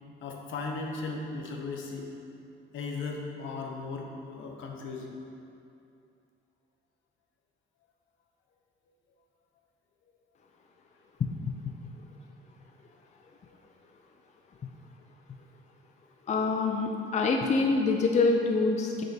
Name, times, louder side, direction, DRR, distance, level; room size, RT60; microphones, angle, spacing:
voice 1, 0.2-2.1 2.7-5.2 13.5-13.6, left 3 dB, 75° left, 1 dB, 0.8 m, -37 dB
voice 2, 11.2-11.5 16.3-19.0, left 3 dB, 35° left, 2 dB, 0.5 m, -26 dB
7.3 x 5.3 x 2.9 m, 2.6 s
cardioid pair, 90°, 20 cm